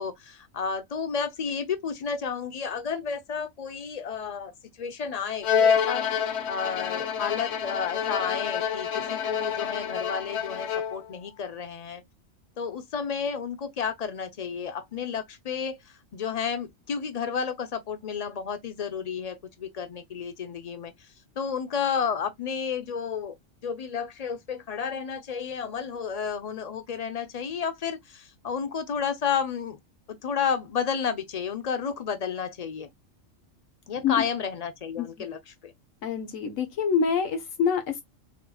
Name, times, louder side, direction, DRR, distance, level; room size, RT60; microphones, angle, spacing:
voice 1, 0.0-4.5 4.8-6.0 6.5-12.0 12.6-15.8 16.1-20.9 21.4-23.3 23.6-29.8 30.1-32.9 33.9-35.7, left 6 dB, 40° left, 0.6 m, -31 dB
Bowed string instrument, 5.4-11.1, left 7 dB, 60° left, 1.0 m, -28 dB
voice 2, 36.0-38.0, left 6 dB, 80° left, 1.4 m, -26 dB
4.2 x 3.8 x 2.3 m
omnidirectional pair, 1.4 m